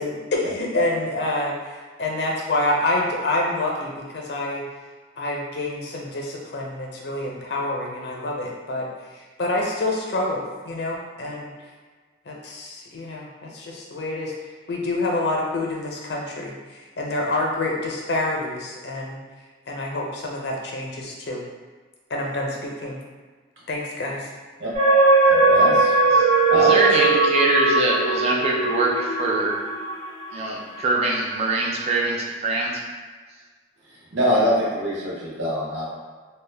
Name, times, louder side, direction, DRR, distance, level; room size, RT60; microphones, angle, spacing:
voice 1, 0.0-4.6 5.2-11.5 12.3-14.3 14.7-16.5 17.0-19.2 19.7-21.4 22.1-23.0 23.7-24.3, left 2 dB, 60° left, -1 dB, 0.5 m, -27 dB
sound 1, 24.7-30.4 30.9-31.0, right 3 dB, 55° right, 1.0 m, -19 dB
voice 2, 25.3-25.9 26.5-26.7 34.1-35.9, equal, 80° right, -7 dB, 0.8 m, -23 dB
voice 3, 26.5-29.6 30.3-32.8, right 2 dB, 35° right, -2 dB, 0.3 m, -23 dB
2.2 x 2.0 x 3.2 m, 1.4 s
head